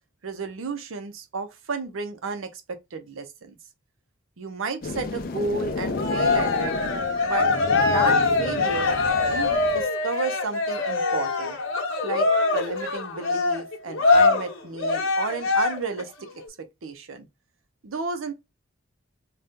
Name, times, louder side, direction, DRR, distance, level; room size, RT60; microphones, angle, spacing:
voice 1, 0.2-3.6 4.4-6.7 7.2-9.0 9.3-11.6 12.0-16.3 16.8-17.3 17.8-18.3, right 4 dB, 75° right, 0.6 m, -32 dB
sound 1, 4.8-9.8, left 3 dB, 45° left, 0.4 m, -32 dB
Cheering, 6.0-16.0, left 3 dB, 75° left, 0.9 m, -23 dB
2.7 x 2.3 x 3.5 m
head